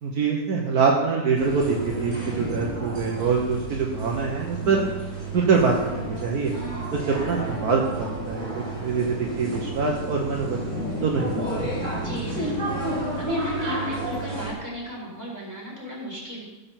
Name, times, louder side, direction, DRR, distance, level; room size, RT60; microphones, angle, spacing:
voice 1, 0.0-4.8 5.3-6.5 6.9-10.6 11.0-11.7, right 5 dB, 65° right, 0 dB, 1.7 m, -24 dB
sound 1, 1.4-14.5, right 1 dB, 25° right, 4.1 m, -31 dB
voice 2, 6.4-7.0 12.0-16.4, equal, 10° right, -7 dB, 4.8 m, -35 dB
15.5 x 6.8 x 5.9 m, 1.1 s
omnidirectional pair, 1.8 m